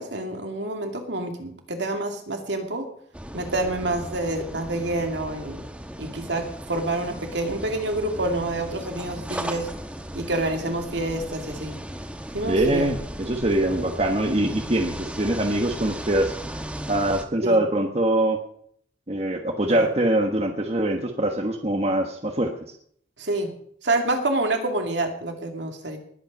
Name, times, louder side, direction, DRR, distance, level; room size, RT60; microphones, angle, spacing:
voice 1, 0.0-2.9 3.3-5.6 6.0-9.7 10.1-11.8 12.3-12.9 17.4-17.6 19.7-19.8 23.2-23.5 23.8-26.0, right 2 dB, 70° right, 3 dB, 2.5 m, -27 dB
sound 1, 3.1-17.2, right 1 dB, 5° right, 1.1 m, -36 dB
voice 2, 12.5-16.6 16.9-18.4 19.1-22.5, right 1 dB, 35° right, 4 dB, 1.2 m, -23 dB
20.0 x 8.9 x 5.3 m, 0.63 s
head